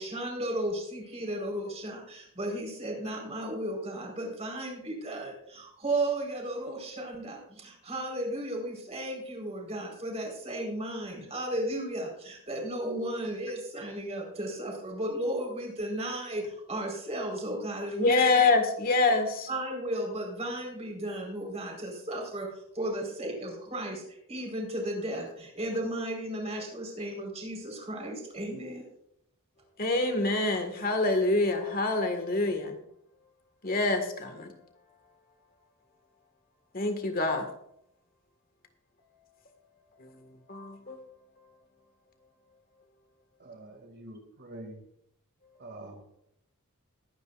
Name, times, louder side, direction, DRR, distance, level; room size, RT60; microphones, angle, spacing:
voice 1, 0.0-18.2 19.5-28.8, right 1 dB, 30° right, 0 dB, 4.4 m, -34 dB
voice 2, 18.0-19.5 29.8-32.8 33.6-34.6 36.7-37.5 40.0-40.1 40.5-41.0, left 3 dB, 40° left, 5 dB, 1.8 m, -26 dB
voice 3, 43.4-44.8 45.6-46.2, right 1 dB, 50° right, 4 dB, 2.4 m, -46 dB
21.5 x 9.5 x 2.5 m, 0.74 s
head